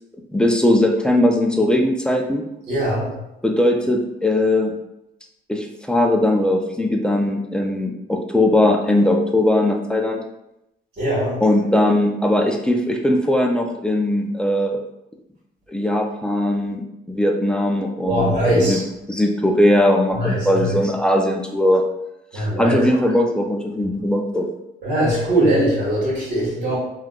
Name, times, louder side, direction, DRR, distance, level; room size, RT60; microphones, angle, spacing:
voice 1, 0.3-2.4 3.4-4.7 5.5-10.2 11.4-14.8 15.7-18.8 19.1-21.8 22.3-24.5, left 1 dB, 5° left, 2 dB, 0.4 m, -19 dB
voice 2, 2.7-3.1 11.0-11.4 18.1-18.8 20.1-20.7 22.3-22.8 24.8-26.8, right 1 dB, 60° right, -7 dB, 1.5 m, -20 dB
3.3 x 2.3 x 2.4 m, 0.87 s
cardioid pair, 90°, 20 cm